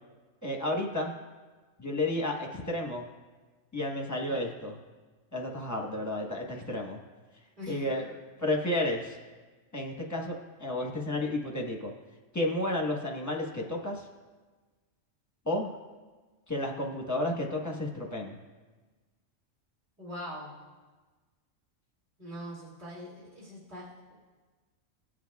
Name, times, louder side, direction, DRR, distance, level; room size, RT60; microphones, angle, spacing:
voice 1, 0.4-1.1 1.8-3.1 3.7-4.8 5.3-7.0 7.7-9.2 9.7-11.9 12.3-14.1 15.5-15.7 16.5-18.4, left 1 dB, 15° left, 0 dB, 1.0 m, -32 dB
voice 2, 20.0-20.5 22.2-24.2, equal, 50° right, -7 dB, 2.8 m, -42 dB
19.0 x 7.4 x 2.3 m, 1.3 s
omnidirectional pair, 1.4 m